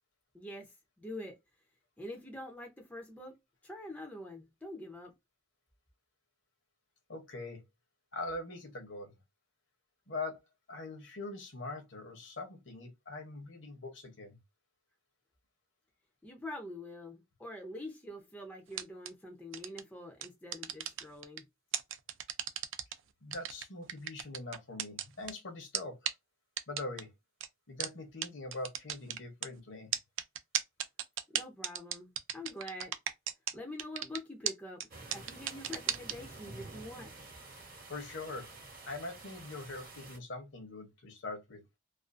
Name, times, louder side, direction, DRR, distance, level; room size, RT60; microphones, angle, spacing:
voice 1, 0.3-1.4 2.0-3.3 3.6-5.1 16.2-21.5 31.3-33.0 33.5-34.8 35.1-37.1, left 1 dB, 5° left, 0.4 m, -45 dB
voice 2, 7.1-7.6 8.1-9.1 10.1-10.4 10.7-14.4 23.2-26.0 26.7-27.1 27.7-29.9 37.9-38.5 38.8-41.6, left 2 dB, 60° left, 0.8 m, -42 dB
sound 1, 18.7-19.1 19.5-19.8 20.2-21.4 21.7-22.9 23.3-25.3 25.7-25.8 26.1-26.2 26.6-27.0 27.4-27.5 27.8-27.9 28.2-28.3 28.5-29.5 29.9-33.5 33.8-34.2 34.5-34.6 34.8-34.9 35.1-36.1, right 11 dB, 65° right, 0.3 m, -34 dB
sound 2, 34.9-40.2, right 2 dB, 45° right, 0.8 m, -50 dB
2.5 x 2.3 x 2.4 m
head